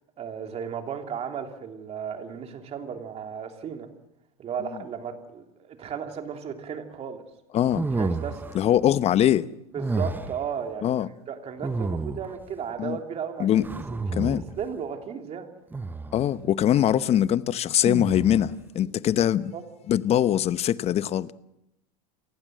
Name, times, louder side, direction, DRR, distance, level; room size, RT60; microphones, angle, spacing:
voice 1, 0.2-3.9 4.4-7.2 8.0-8.5 9.7-10.9 11.3-13.6 13.9-14.1 14.6-15.5 18.8-18.9 19.5-19.6, right 7 dB, 35° right, 3.1 m, -35 dB
voice 2, 7.5-7.9 8.5-9.5 10.8-11.1 12.8-13.0 13.4-13.7 14.2-14.4 16.1-19.5 19.9-21.3, left 11 dB, 35° left, 0.9 m, -22 dB
sound 1, 7.7-8.7 9.8-10.5 11.6-12.4 13.6-14.6 15.7-16.3 17.8-18.6, right 3 dB, 10° right, 0.9 m, -30 dB
29.0 x 15.0 x 7.7 m
supercardioid pair, 115°, 18 cm